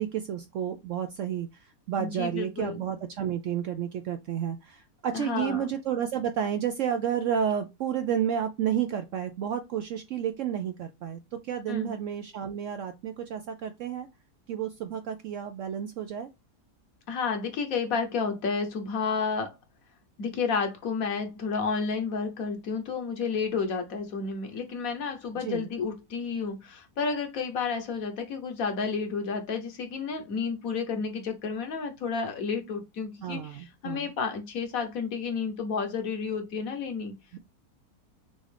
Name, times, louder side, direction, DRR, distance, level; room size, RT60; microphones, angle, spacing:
voice 1, 0.0-1.5 1.9-14.1 14.5-16.3 25.4-25.7 33.2-34.1 37.3-37.4, right 9 dB, 70° right, 0.7 m, -31 dB
voice 2, 2.0-2.8 5.1-5.7 11.7-11.9 17.1-19.5 20.2-37.1, left 5 dB, 65° left, 1.3 m, -31 dB
6.3 x 2.5 x 3.3 m
omnidirectional pair, 1.7 m